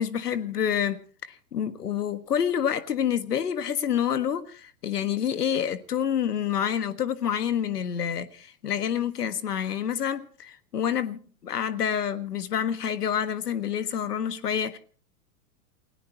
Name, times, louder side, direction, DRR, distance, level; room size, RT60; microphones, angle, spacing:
voice 1, 0.0-14.8, left 8 dB, 90° left, 1.6 m, -28 dB
29.0 x 17.0 x 2.9 m
hypercardioid pair, 120°, 46 cm